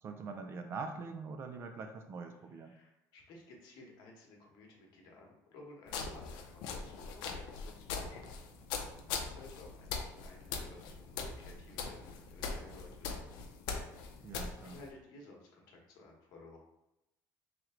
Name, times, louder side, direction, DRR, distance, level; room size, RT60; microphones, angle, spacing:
voice 1, 0.0-2.7 14.2-14.8, right 4 dB, 35° right, 6 dB, 0.3 m, -43 dB
voice 2, 2.6-8.3 9.0-13.3 14.6-16.6, left 2 dB, 65° left, 0 dB, 1.0 m, -56 dB
sound 1, 5.9-14.9, left 5 dB, 85° left, 0.6 m, -41 dB
3.2 x 3.0 x 3.7 m, 0.90 s
cardioid pair, 180°, 8 cm